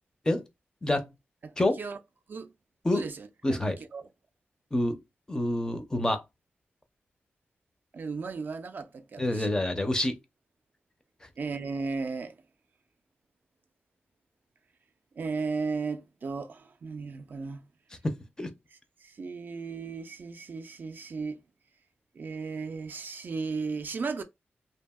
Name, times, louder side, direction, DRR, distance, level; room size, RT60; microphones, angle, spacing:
voice 1, 2.9-3.6 3.9-4.0 7.9-9.5 11.4-12.4 15.2-17.6 19.0-21.4 22.2-24.2, right 4 dB, 50° right, 0.3 m, -35 dB
voice 2, 3.4-3.8 4.7-5.0 5.3-6.2 9.2-10.1 18.0-18.5, left 1 dB, 15° left, 0.4 m, -27 dB
2.7 x 2.6 x 2.2 m
wide cardioid pair, 145°, 4 cm